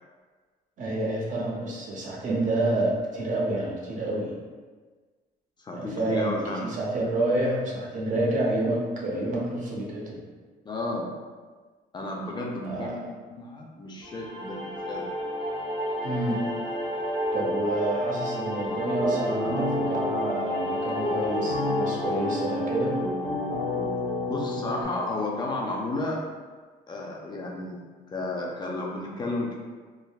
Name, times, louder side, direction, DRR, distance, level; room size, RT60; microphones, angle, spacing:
voice 1, 0.8-4.3 5.7-10.2 12.6-13.0 16.0-16.4 17.3-23.0, right 1 dB, 50° right, -3 dB, 0.7 m, -28 dB
voice 2, 5.6-6.6 10.6-11.1 11.9-15.1 24.3-26.2 26.9-27.8 28.1-29.6, left 2 dB, 25° left, -2 dB, 0.4 m, -32 dB
sound 1, 14.0-25.1, equal, 70° right, 1.0 m, -31 dB
sound 2, 18.7-24.8, left 2 dB, 85° left, 1.1 m, -32 dB
3.4 x 2.1 x 2.3 m, 1.4 s
cardioid pair, 110°, 17 cm